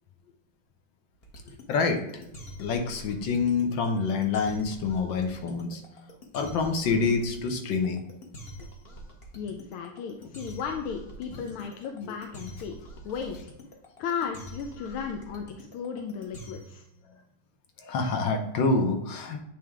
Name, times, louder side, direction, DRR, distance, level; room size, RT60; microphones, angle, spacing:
sound 1, 1.2-16.9, equal, 40° left, 1.0 m, -45 dB
voice 1, 1.7-2.2 2.6-5.8 6.3-8.1 17.8-19.4, left 4 dB, 70° left, 5 dB, 1.6 m, -27 dB
voice 2, 9.3-13.5 14.0-16.8, left 6 dB, 90° left, 4 dB, 1.5 m, -35 dB
8.5 x 3.4 x 3.6 m, 0.85 s
omnidirectional pair, 2.3 m